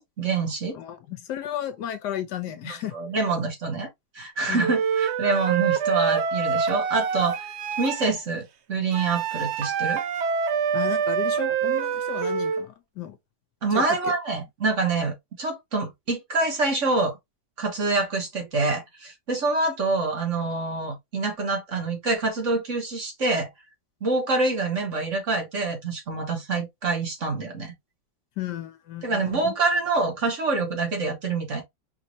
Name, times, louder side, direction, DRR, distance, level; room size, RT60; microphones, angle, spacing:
voice 1, 0.0-0.8 2.9-3.9 4.1-7.5 7.8-10.0 13.6-17.2 17.6-23.5 24.0-27.7 29.0-31.6, right 3 dB, 45° right, 1.6 m, -26 dB
voice 2, 0.7-2.9 4.5-4.7 10.7-13.2 13.7-14.1 28.4-29.5, left 11 dB, 80° left, 1.4 m, -34 dB
Wind instrument woodwind instrument, 4.6-8.1 8.9-12.7, right 7 dB, 75° right, 0.6 m, -26 dB
5.1 x 2.7 x 3.0 m
omnidirectional pair, 1.8 m